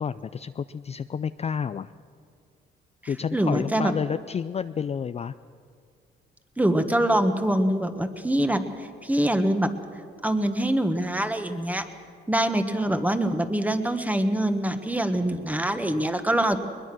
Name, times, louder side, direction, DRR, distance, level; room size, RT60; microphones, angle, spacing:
voice 1, 0.0-1.9 3.1-5.3, left 7 dB, 35° left, 12 dB, 0.4 m, -30 dB
voice 2, 3.3-3.9 6.6-9.7 10.2-11.8 12.3-16.6, right 1 dB, 10° right, 8 dB, 1.5 m, -24 dB
21.5 x 20.5 x 6.2 m, 2.2 s
cardioid pair, 90°, 20 cm